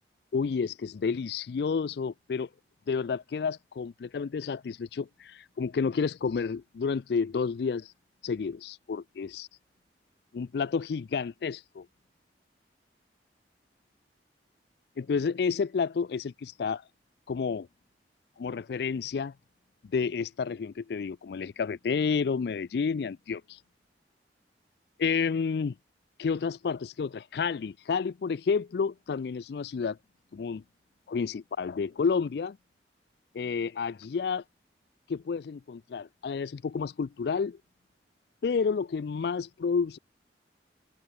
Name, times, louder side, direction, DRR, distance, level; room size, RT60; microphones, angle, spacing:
voice 1, 0.3-2.5 2.9-7.9 8.2-9.5 10.3-11.9 15.0-16.8 17.3-17.7 18.4-19.3 19.9-23.6 25.0-25.7 26.2-30.0 30.3-30.6 31.1-32.6 33.3-34.4 35.1-37.6 38.4-40.0, left 5 dB, 65° left, 0.4 m, -30 dB
head